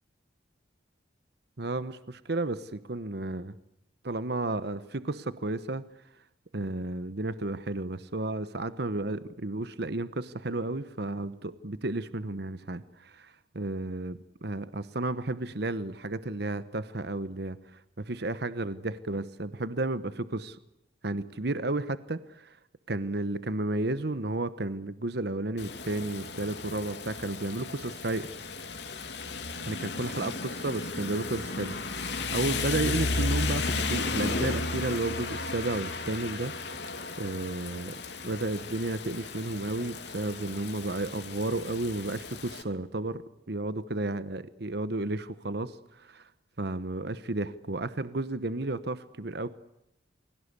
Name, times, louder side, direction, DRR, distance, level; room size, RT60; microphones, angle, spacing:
voice 1, 1.6-3.5 4.0-5.8 6.5-20.6 21.0-22.6 22.9-28.3 29.6-36.9 37.2-46.3 46.6-49.5, right 2 dB, 60° right, 13 dB, 1.1 m, -33 dB
Rain, 25.6-42.6, left 3 dB, 65° left, 2.9 m, -34 dB
29.5 x 22.5 x 8.3 m, 0.83 s
head